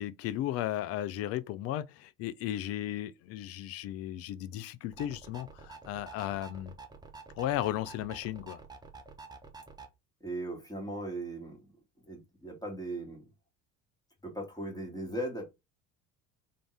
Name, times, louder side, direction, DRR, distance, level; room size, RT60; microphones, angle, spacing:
voice 1, 0.0-6.7 7.4-8.6, left 13 dB, 35° left, 0.4 m, -35 dB
sound 1, 4.9-9.9, right 4 dB, 10° right, 0.7 m, -49 dB
voice 2, 10.2-11.6 12.0-13.3 14.2-15.4, right 1 dB, 10° left, 2.0 m, -38 dB
3.7 x 3.4 x 3.3 m
figure-of-eight pair, 60°, 48 cm